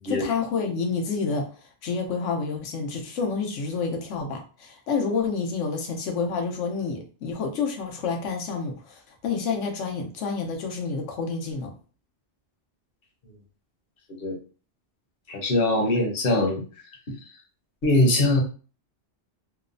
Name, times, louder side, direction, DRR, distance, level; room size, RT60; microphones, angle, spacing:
voice 1, 0.0-1.4 1.8-11.7, left 5 dB, 90° left, 3 dB, 1.0 m, -29 dB
voice 2, 15.3-16.6 17.8-18.4, left 2 dB, 55° left, 1 dB, 0.9 m, -22 dB
3.0 x 2.0 x 2.5 m, 0.37 s
omnidirectional pair, 1.2 m